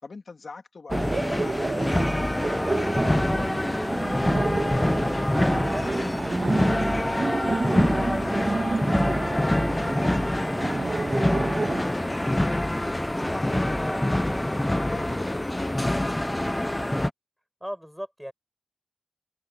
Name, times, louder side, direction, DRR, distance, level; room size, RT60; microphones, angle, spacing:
voice 1, 0.0-2.4 2.6-4.2 4.6-6.2 6.6-7.6 7.9-8.6 8.9-11.4 11.7-12.5 13.3-16.1, left 4 dB, 65° left, 3.0 m, -44 dB
sound 1, 0.9-17.1, left 1 dB, 15° left, 0.5 m, -25 dB
Laughter, 0.9-11.8, right 3 dB, 55° right, 1.7 m, -30 dB
voice 2, 13.7-14.5 17.6-18.3, equal, 5° right, 6.0 m, -37 dB
wide cardioid pair, 65°, 0 cm